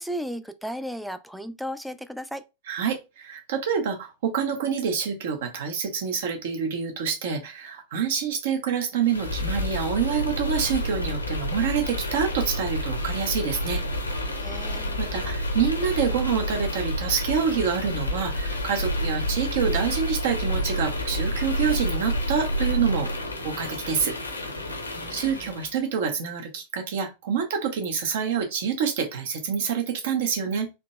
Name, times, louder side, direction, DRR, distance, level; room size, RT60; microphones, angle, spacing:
voice 1, 0.0-2.4 14.3-15.0 24.9-25.3, equal, ahead, 0.3 m, -35 dB
voice 2, 2.7-13.8 15.0-23.1 23.4-24.1 25.1-30.7, right 7 dB, 55° right, 0.9 m, -27 dB
sound 1, 9.0-25.7, equal, 80° left, 0.7 m, -29 dB
3.8 x 2.8 x 2.2 m
figure-of-eight pair, 90°, 0 cm